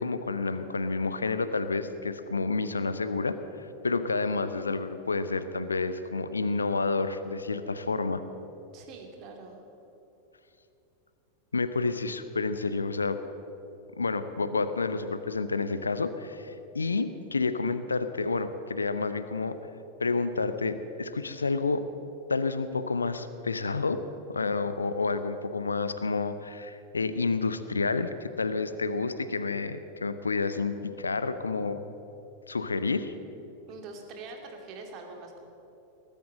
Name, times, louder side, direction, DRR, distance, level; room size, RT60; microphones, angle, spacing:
voice 1, 0.0-8.2 11.5-13.2 14.0-19.6 20.0-21.8 22.3-24.0 24.3-31.8 32.5-33.1, left 3 dB, 75° left, 12 dB, 0.7 m, -29 dB
voice 2, 8.7-9.6 33.7-35.4, right 3 dB, 40° right, 2 dB, 2.6 m, -44 dB
19.5 x 8.9 x 7.5 m, 2.9 s
figure-of-eight pair, 90°, 0 cm